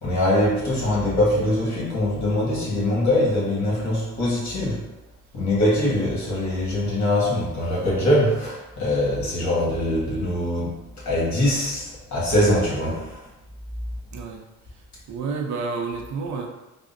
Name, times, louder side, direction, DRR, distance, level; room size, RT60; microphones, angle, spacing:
voice 1, 0.0-4.8 5.3-13.2, left 1 dB, 65° left, -5 dB, 1.3 m, -23 dB
voice 2, 14.1-14.5 15.1-16.5, right 4 dB, 70° right, 3 dB, 0.6 m, -29 dB
3.5 x 2.0 x 2.5 m, 0.99 s
cardioid pair, 90°, 30 cm